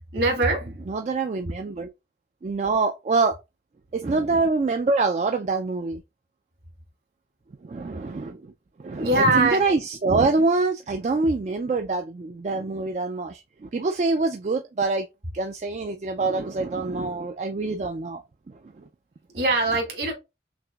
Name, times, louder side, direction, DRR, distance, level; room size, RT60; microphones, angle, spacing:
voice 1, 0.1-0.7 9.0-9.7 19.3-20.1, right 2 dB, 60° right, 1.9 m, -22 dB
voice 2, 0.9-1.9 2.4-3.4 3.9-6.0 7.6-8.5 8.8-15.1 15.3-18.2, right 3 dB, 40° right, 0.3 m, -25 dB
5.8 x 2.5 x 2.3 m
head